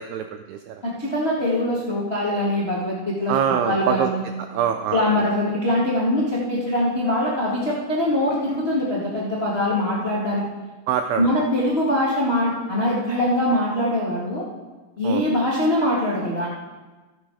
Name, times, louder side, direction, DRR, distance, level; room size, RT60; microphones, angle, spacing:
voice 1, 0.0-0.8 3.3-4.1 4.4-5.2 10.9-11.3 15.0-15.2, right 9 dB, 90° right, 7 dB, 2.3 m, -24 dB
voice 2, 0.8-4.2 4.9-10.4 11.2-14.4 15.0-16.5, left 1 dB, 65° left, -6 dB, 0.6 m, -23 dB
14.5 x 9.4 x 4.9 m, 1.2 s
omnidirectional pair, 5.3 m